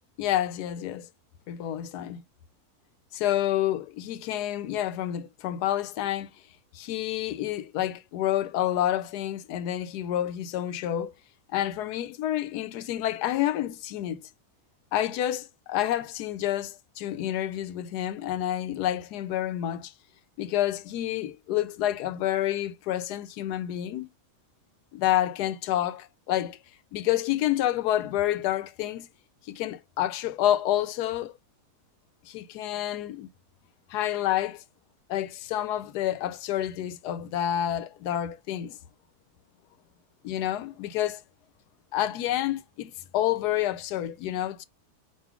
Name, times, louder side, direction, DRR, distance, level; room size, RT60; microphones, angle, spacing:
voice 1, 0.2-1.1 1.5-2.2 3.1-6.3 6.7-11.1 11.5-14.2 14.9-19.9 20.4-24.1 24.9-26.6 26.9-29.1 29.5-31.4 32.3-33.3 33.9-34.6 35.1-38.8 40.2-41.2 41.9-44.6, left 12 dB, 85° left, 1.2 m, -29 dB
5.4 x 2.5 x 3.5 m
omnidirectional pair, 1.7 m